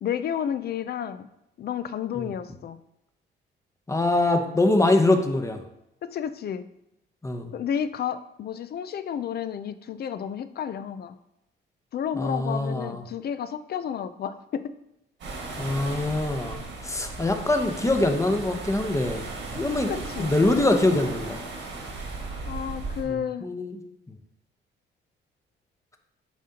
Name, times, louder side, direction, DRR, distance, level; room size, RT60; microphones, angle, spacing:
voice 1, 0.0-1.3 1.6-2.8 6.0-6.7 7.5-11.2 11.9-14.7 19.9-20.3 22.4-23.4, left 8 dB, 55° left, 12 dB, 0.5 m, -31 dB
voice 2, 3.9-5.6 7.2-7.5 12.1-13.0 15.6-19.3 19.5-19.9 20.2-21.4 23.1-23.8, left 2 dB, 15° left, 5 dB, 0.8 m, -24 dB
sound 1, 15.2-23.0, right 3 dB, 70° right, 1.7 m, -36 dB
7.2 x 5.1 x 2.9 m, 0.85 s
cardioid pair, 90°, 20 cm